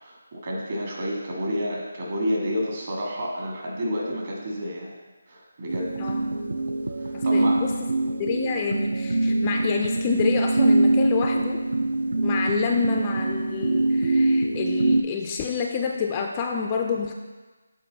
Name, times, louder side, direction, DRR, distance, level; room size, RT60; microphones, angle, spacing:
voice 1, 0.0-4.9 5.3-6.2 7.0-7.6, equal, 45° right, -3 dB, 1.6 m, -30 dB
sound 1, 5.7-15.0, right 2 dB, 75° right, 0.5 m, -23 dB
voice 2, 7.1-7.7 8.2-11.6 12.2-17.1, left 6 dB, 20° left, 2 dB, 0.3 m, -28 dB
7.5 x 3.8 x 3.9 m, 1.3 s
figure-of-eight pair, 155°, 0 cm